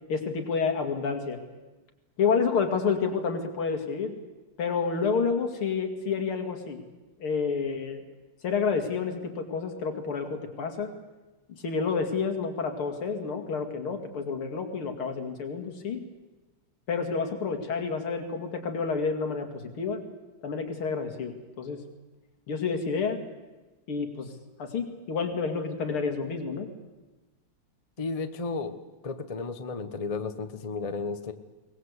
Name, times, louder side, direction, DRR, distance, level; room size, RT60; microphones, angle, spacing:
voice 1, 0.1-1.4 2.2-4.2 4.6-6.8 7.2-8.0 8.4-10.9 11.6-16.0 16.9-19.5 19.8-20.0 20.4-21.8 22.5-23.2 23.9-24.3 24.6-26.7, left 5 dB, 75° left, 6 dB, 3.1 m, -29 dB
voice 2, 28.0-31.3, left 4 dB, 30° left, 9 dB, 0.7 m, -33 dB
22.5 x 19.5 x 8.2 m, 1.1 s
omnidirectional pair, 2.4 m